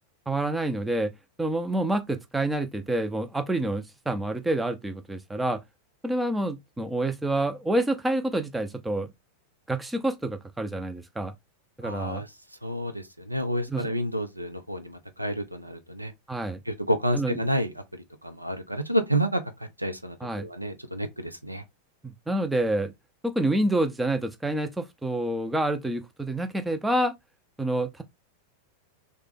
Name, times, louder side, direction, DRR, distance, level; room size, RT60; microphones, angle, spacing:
voice 1, 0.3-1.1 1.4-5.6 6.0-9.1 9.7-11.3 11.8-12.2 13.7-13.9 16.3-16.6 17.1-17.4 20.2-20.5 22.0-22.9 23.2-27.1 27.6-28.0, right 1 dB, 5° right, 0.5 m, -28 dB
voice 2, 11.8-12.3 12.6-16.1 16.7-19.4 19.8-21.6, equal, 85° right, 0.5 m, -29 dB
3.3 x 2.2 x 3.5 m
figure-of-eight pair, 90°, 0 cm